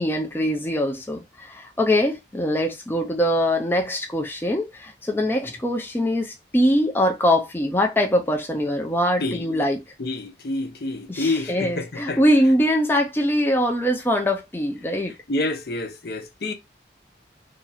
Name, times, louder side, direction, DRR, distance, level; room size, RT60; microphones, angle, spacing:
voice 1, 0.0-9.8 11.1-15.1, equal, 10° left, 0.4 m, -22 dB
voice 2, 9.2-9.6 10.0-12.2 15.3-16.5, left 2 dB, 55° left, 0.6 m, -28 dB
2.8 x 2.4 x 4.0 m
head